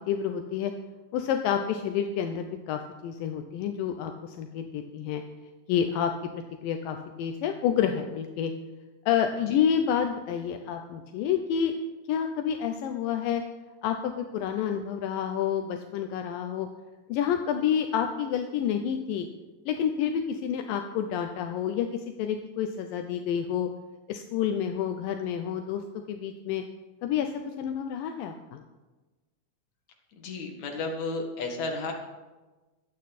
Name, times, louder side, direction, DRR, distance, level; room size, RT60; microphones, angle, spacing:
voice 1, 0.1-0.7 1.1-5.2 5.7-6.1 6.6-8.5 9.1-11.7 12.1-13.4 13.8-16.7 17.1-19.3 19.7-23.7 24.1-25.8 26.1-26.6 27.0-27.3 27.6-28.6, left 8 dB, 80° left, 6 dB, 2.4 m, -29 dB
voice 2, 30.2-31.9, left 3 dB, 60° left, 2 dB, 3.0 m, -33 dB
23.0 x 8.6 x 4.2 m, 1.2 s
omnidirectional pair, 4.0 m